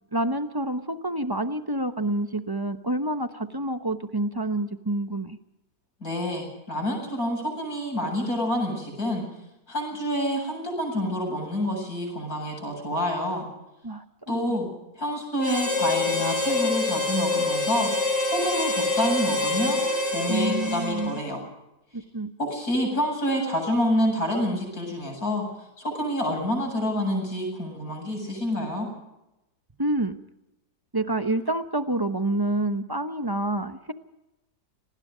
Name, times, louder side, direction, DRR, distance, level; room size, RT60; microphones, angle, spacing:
voice 1, 0.1-5.4 13.8-14.6 20.3-21.2 21.9-22.3 29.8-30.1 30.9-33.9, right 2 dB, 20° right, 9 dB, 0.7 m, -28 dB
voice 2, 6.0-9.2 9.7-13.5 14.3-14.7 14.9-17.9 18.2-21.4 22.4-25.4 25.8-28.9, equal, 55° left, 2 dB, 8.7 m, -28 dB
Harmonica, 15.4-21.4, left 2 dB, 40° left, 5.7 m, -26 dB
27.5 x 19.5 x 5.1 m, 0.93 s
omnidirectional pair, 1.8 m